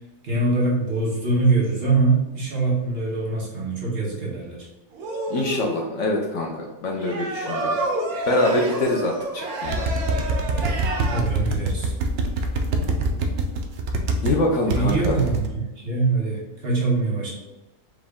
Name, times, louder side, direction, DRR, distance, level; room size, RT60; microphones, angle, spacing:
voice 1, 0.2-4.7 11.1-11.9 14.7-17.3, right 3 dB, 45° right, -4 dB, 1.2 m, -23 dB
sound 1, 4.9-5.8 7.0-11.2, right 2 dB, 80° right, 1.2 m, -29 dB
voice 2, 5.3-7.7 8.3-9.8 14.2-15.2, left 1 dB, 65° left, 1 dB, 0.9 m, -24 dB
sound 2, 9.6-14.4 14.7-15.5, right 2 dB, 65° right, 0.6 m, -24 dB
4.9 x 2.5 x 3.4 m, 1.0 s
omnidirectional pair, 1.5 m